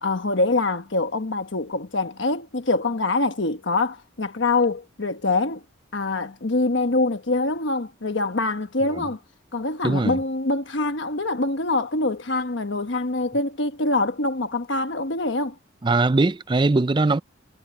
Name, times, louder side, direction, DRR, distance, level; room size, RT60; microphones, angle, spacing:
voice 1, 0.0-5.6 5.9-9.2 9.5-15.6, left 2 dB, 60° left, 1.2 m, -24 dB
voice 2, 9.8-10.2 15.8-17.2, right 3 dB, 25° right, 0.4 m, -21 dB
head